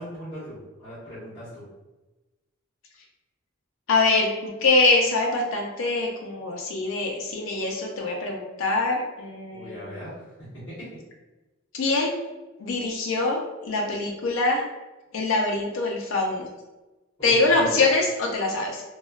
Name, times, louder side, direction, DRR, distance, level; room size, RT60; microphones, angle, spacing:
voice 1, 0.0-1.6 9.5-10.9 17.2-17.7, equal, 25° left, -11 dB, 1.1 m, -39 dB
voice 2, 3.9-10.1 11.7-12.2 12.6-14.6 15.1-16.5 17.2-18.8, left 3 dB, 70° left, 0 dB, 0.4 m, -24 dB
3.0 x 2.3 x 2.3 m, 1.1 s
head